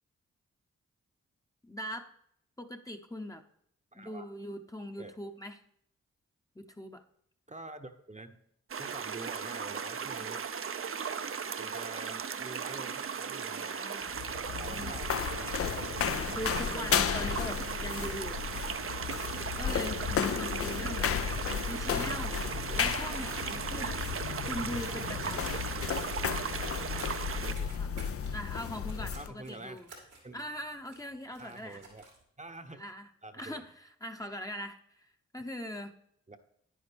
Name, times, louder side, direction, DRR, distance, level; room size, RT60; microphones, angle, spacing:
voice 1, 1.6-2.1 2.6-3.4 3.9-5.6 6.6-7.0 13.5-14.2 14.5-15.0 16.2-18.5 19.6-21.1 21.7-25.5 26.3-26.5 27.8-27.9 28.3-29.9 30.3-31.8 32.7-33.1 33.3-36.0, equal, 10° left, 4 dB, 0.8 m, -41 dB
voice 2, 3.9-4.3 5.0-5.2 7.5-8.4 8.8-10.4 11.6-13.8 14.6-15.6 20.0-20.6 27.3-27.7 29.0-29.8 30.2-30.4 31.4-32.1 32.4-32.9 33.2-33.7 36.3-36.4, right 2 dB, 25° right, 7 dB, 0.9 m, -47 dB
sound 1, 8.7-27.5, right 6 dB, 45° right, 0.6 m, -37 dB
sound 2, 14.0-29.3, left 8 dB, 50° left, 0.5 m, -34 dB
sound 3, 19.0-32.2, right 3 dB, 90° right, 2.5 m, -55 dB
9.5 x 9.5 x 3.4 m, 0.71 s
supercardioid pair, 40°, 30 cm